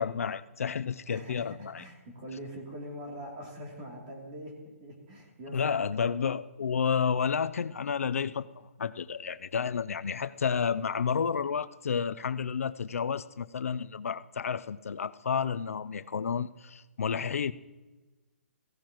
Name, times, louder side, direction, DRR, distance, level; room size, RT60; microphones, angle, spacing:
voice 1, 0.0-1.8 5.5-17.5, left 6 dB, 75° left, 14 dB, 0.5 m, -31 dB
voice 2, 1.1-5.9, equal, 30° right, 0 dB, 3.0 m, -43 dB
17.0 x 16.0 x 3.0 m, 1.2 s
hypercardioid pair, 165°, 8 cm